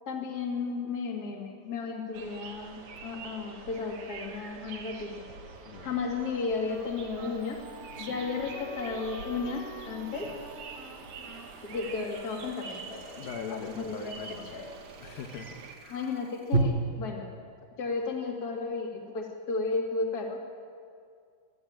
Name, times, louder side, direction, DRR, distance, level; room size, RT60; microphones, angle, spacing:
voice 1, 0.1-5.3 5.8-7.6 8.0-10.3 11.6-13.2 13.5-14.2 14.5-14.7 15.9-17.3 17.8-20.4, left 4 dB, 30° left, 0 dB, 2.4 m, -34 dB
sound 1, 2.1-15.8, right 4 dB, 60° right, 2.6 m, -45 dB
sound 2, 3.0-3.1 6.5-16.6, right 3 dB, 30° right, 1.4 m, -40 dB
Wind instrument woodwind instrument, 5.7-13.0, right 2 dB, 75° right, 3.7 m, -49 dB
voice 2, 13.1-14.5 15.0-15.6 15.8-16.0, left 6 dB, 75° left, 4 dB, 2.8 m, -41 dB
22.5 x 13.0 x 8.8 m, 2.2 s
omnidirectional pair, 4.2 m